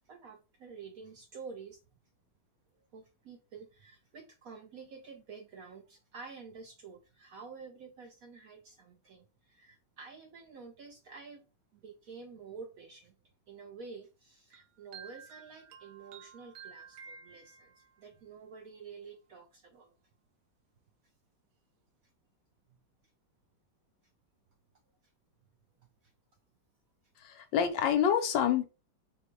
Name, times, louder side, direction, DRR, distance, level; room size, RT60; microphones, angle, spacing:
voice 1, 0.0-1.8 2.9-11.5 11.7-13.2 13.5-19.9 22.7-22.8, right 5 dB, 70° right, 4 dB, 0.8 m, -49 dB
sound 1, 14.5-18.0, right 6 dB, 90° right, 1.4 m, -52 dB
voice 2, 27.2-28.6, left 8 dB, 80° left, 7 dB, 1.4 m, -27 dB
4.2 x 2.2 x 4.4 m, 0.30 s
omnidirectional pair, 2.0 m